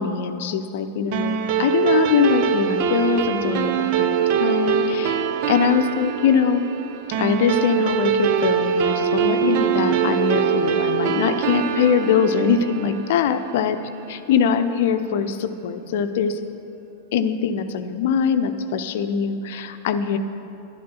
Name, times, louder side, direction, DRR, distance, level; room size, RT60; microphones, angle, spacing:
voice 1, 0.0-6.6 7.2-13.8 14.3-16.4 17.1-20.2, left 7 dB, 55° left, 9 dB, 0.7 m, -22 dB
sound 1, 1.1-13.9, right 8 dB, 45° right, 0.7 m, -23 dB
12.0 x 11.5 x 5.7 m, 2.8 s
figure-of-eight pair, 90°, 0 cm